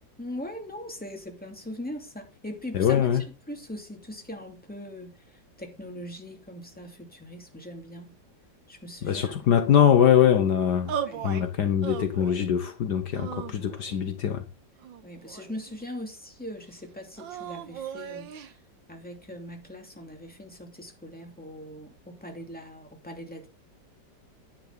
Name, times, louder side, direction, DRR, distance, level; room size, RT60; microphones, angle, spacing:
voice 1, 0.2-3.1 3.5-8.2 8.7-9.4 11.0-11.3 15.0-18.6 18.9-23.5, left 1 dB, 5° left, 2.6 m, -41 dB
voice 2, 2.7-3.2 9.0-11.0 11.2-14.4, left 9 dB, 65° left, 1.6 m, -22 dB
sound 1, 10.9-11.5 11.8-12.5 13.1-14.0 14.8-15.8 17.2-18.5, right 8 dB, 85° right, 1.7 m, -37 dB
10.0 x 9.6 x 3.9 m
omnidirectional pair, 2.0 m